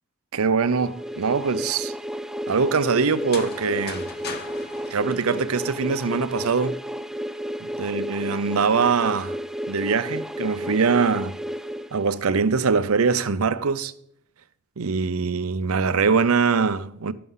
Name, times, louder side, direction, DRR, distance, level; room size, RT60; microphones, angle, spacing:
voice 1, 0.3-1.9 2.5-4.1 4.9-6.8 7.6-9.4 9.7-11.4 11.9-13.9 14.8-17.1, right 5 dB, 80° right, 0.6 m, -23 dB
sound 1, 0.7-12.5, equal, ahead, 0.3 m, -32 dB
sound 2, 3.1-6.0, left 4 dB, 50° left, 1.2 m, -39 dB
12.5 x 6.9 x 5.5 m
head